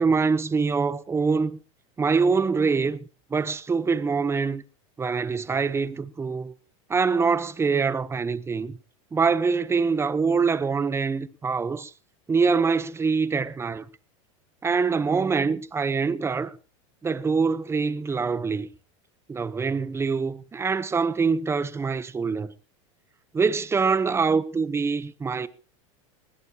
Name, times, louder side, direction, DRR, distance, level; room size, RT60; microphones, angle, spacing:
voice 1, 0.0-1.6 2.0-3.0 3.3-4.6 5.0-6.5 6.9-8.8 9.1-11.9 12.3-13.9 14.6-16.5 17.0-18.7 19.3-22.5 23.3-25.5, right 5 dB, 15° right, 0.9 m, -24 dB
20.0 x 17.0 x 2.9 m
supercardioid pair, 120°, 17 cm